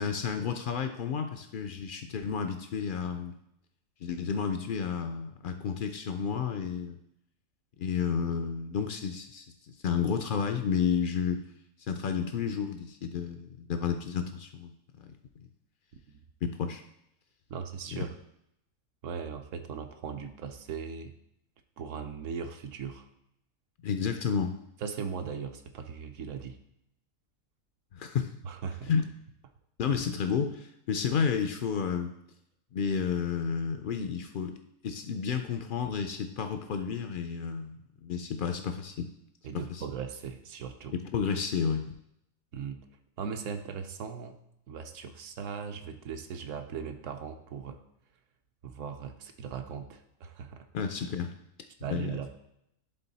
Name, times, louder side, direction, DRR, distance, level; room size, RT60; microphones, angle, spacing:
voice 1, 0.0-3.4 4.0-7.0 7.8-9.5 9.8-11.4 11.9-15.1 16.4-16.8 17.9-18.0 23.8-24.5 27.9-28.3 28.9-29.1 29.8-32.1 32.7-34.5 34.8-39.1 39.5-39.8 40.9-42.0 50.7-51.3 51.9-52.1, left 6 dB, 70° left, 6 dB, 0.4 m, -31 dB
voice 2, 17.5-18.1 19.0-21.1 21.8-23.1 24.8-26.6 28.4-28.9 39.4-40.9 42.5-42.8 43.2-44.4 44.7-47.8 48.6-50.7 51.8-52.4, right 6 dB, 70° right, 7 dB, 1.0 m, -38 dB
11.0 x 3.8 x 4.0 m, 0.80 s
omnidirectional pair, 1.4 m